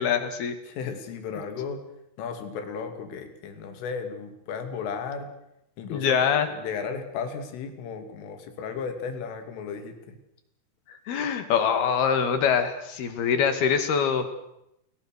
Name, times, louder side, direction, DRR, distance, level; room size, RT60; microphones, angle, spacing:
voice 1, 0.0-0.6 5.9-6.5 11.1-14.3, left 7 dB, 60° left, 9 dB, 3.9 m, -24 dB
voice 2, 0.7-1.8 2.2-5.3 5.8-10.2, left 6 dB, 85° left, 7 dB, 5.2 m, -35 dB
29.5 x 22.5 x 6.6 m, 0.81 s
omnidirectional pair, 5.6 m